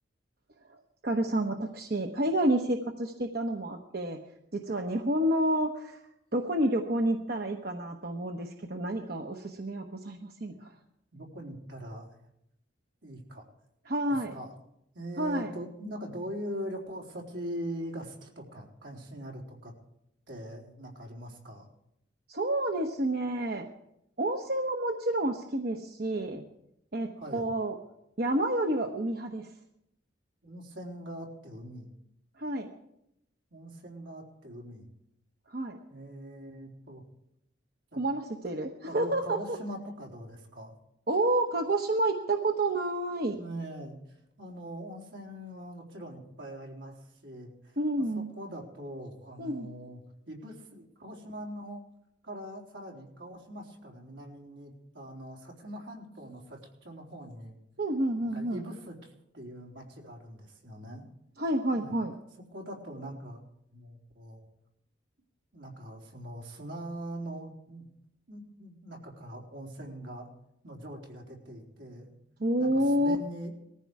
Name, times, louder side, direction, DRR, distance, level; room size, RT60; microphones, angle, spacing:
voice 1, 1.0-4.2 4.5-6.0 6.3-10.7 13.9-14.3 15.2-15.5 22.3-23.7 24.2-26.4 26.9-27.8 28.2-29.5 32.4-32.7 35.5-35.8 37.9-39.6 41.1-43.4 47.8-48.3 49.4-49.7 57.8-58.6 61.4-62.1 72.4-73.2, right 1 dB, 55° right, 3 dB, 1.0 m, -29 dB
voice 2, 11.1-12.3 13.0-13.5 14.1-14.5 14.9-19.7 20.3-21.7 27.2-27.5 30.4-31.9 33.5-34.9 35.9-37.0 37.9-38.0 38.9-40.7 43.3-44.0 44.4-50.0 50.3-51.8 52.2-57.6 58.2-61.0 61.7-61.9 62.5-63.4 63.7-64.5 65.5-67.8 68.3-70.3 70.6-72.1 72.6-73.5, right 1 dB, 80° right, 0 dB, 3.9 m, -42 dB
19.5 x 14.5 x 4.8 m, 0.81 s
head